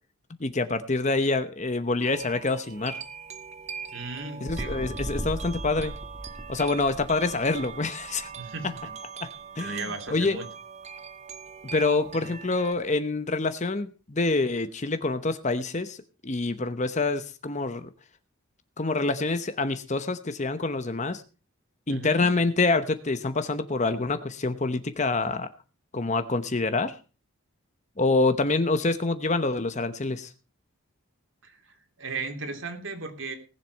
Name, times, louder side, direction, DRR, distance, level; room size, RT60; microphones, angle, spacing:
voice 1, 0.4-3.0 4.4-5.9 6.5-8.3 9.2-9.3 9.6-9.8 10.1-10.4 11.7-16.0 16.2-17.9 18.8-21.2 21.9-25.5 25.9-27.0 28.0-30.3, left 3 dB, 35° left, 11 dB, 0.9 m, -26 dB
sound 1, 2.0-12.7, right 6 dB, 30° right, 0.7 m, -41 dB
voice 2, 3.9-4.9 8.4-8.7 9.6-10.5 12.1-12.3 21.9-22.3 31.4-33.4, right 3 dB, 60° right, 5 dB, 2.9 m, -36 dB
sound 2, 4.5-8.2 8.8-8.9, right 1 dB, 15° right, 1.7 m, -37 dB
19.0 x 7.5 x 5.3 m, 0.35 s
head